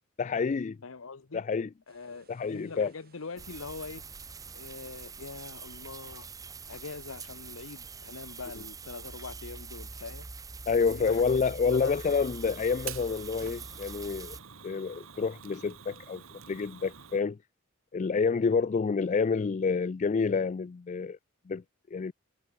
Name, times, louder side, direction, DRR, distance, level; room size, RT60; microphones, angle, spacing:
voice 1, 0.2-0.8 1.3-1.7 2.3-2.9 10.7-14.4 14.6-17.4 17.9-21.2 21.5-21.6 21.9-22.1, left 5 dB, 35° left, 0.3 m, -28 dB
voice 2, 0.8-1.4 1.9-4.0 4.5-6.3 6.7-10.3 10.8-11.2 11.6-12.0, left 4 dB, 70° left, 0.9 m, -43 dB
sound 1, 1.9-8.7, right 6 dB, 45° right, 3.0 m, -65 dB
sound 2, 3.4-14.4, right 4 dB, 15° right, 0.7 m, -44 dB
Fire, 11.9-17.2, right 9 dB, 70° right, 1.4 m, -47 dB
head